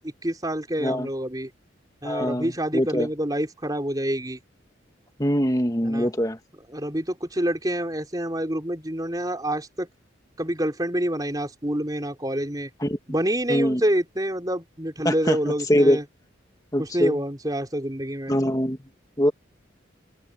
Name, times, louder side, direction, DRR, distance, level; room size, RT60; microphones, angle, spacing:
voice 1, 0.0-1.5 2.0-4.4 5.8-6.1 6.7-9.9 10.4-12.7 13.1-16.0 16.8-18.4, right 1 dB, 20° right, 4.3 m, -27 dB
voice 2, 2.0-3.1 5.2-6.4 12.8-13.0 13.5-13.8 15.0-15.4 15.7-16.0 16.7-17.2 18.3-18.8 19.2-19.3, equal, 20° left, 2.0 m, -22 dB
head